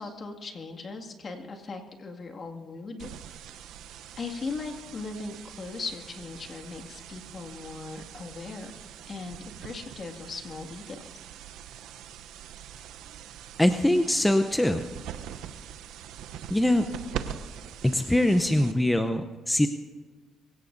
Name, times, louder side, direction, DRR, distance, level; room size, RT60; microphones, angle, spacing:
voice 1, 0.0-3.7 4.2-8.7 9.1-11.0, left 3 dB, 45° left, 3 dB, 2.1 m, -39 dB
sound 1, 3.0-19.0, right 9 dB, 90° right, 0.7 m, -43 dB
voice 2, 13.6-14.8 16.5-16.8 17.8-19.7, left 1 dB, 10° left, 7 dB, 0.7 m, -23 dB
24.0 x 17.0 x 2.7 m, 1.4 s
cardioid pair, 90°, 0 cm